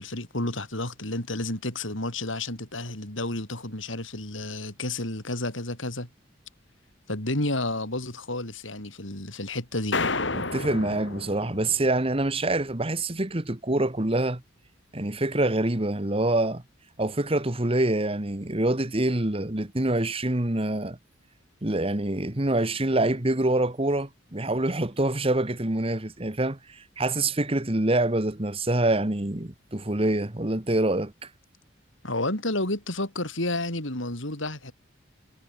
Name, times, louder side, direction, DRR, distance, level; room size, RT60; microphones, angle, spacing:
voice 1, 0.0-6.1 7.1-10.0 32.0-34.7, left 2 dB, 85° left, 6.6 m, -31 dB
sound 1, 9.9-12.3, left 3 dB, 70° left, 3.9 m, -31 dB
voice 2, 10.3-14.4 14.9-16.6 17.0-21.0 21.6-31.1, right 2 dB, 30° right, 1.5 m, -26 dB
head